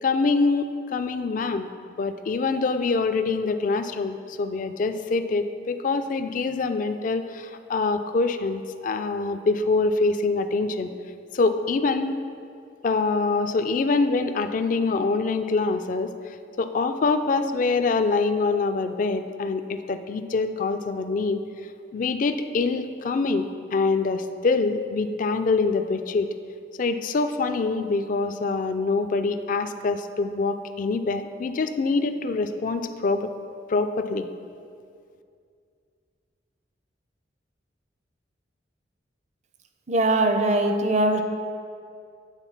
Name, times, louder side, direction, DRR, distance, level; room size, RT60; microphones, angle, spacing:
voice 1, 0.0-1.7 2.0-10.9 11.3-12.1 12.8-21.4 21.9-26.3 26.8-33.3 33.7-34.3, left 3 dB, 45° left, 9 dB, 0.4 m, -25 dB
voice 2, 39.9-41.2, right 2 dB, 40° right, 6 dB, 0.5 m, -21 dB
9.0 x 3.9 x 5.8 m, 2.3 s
head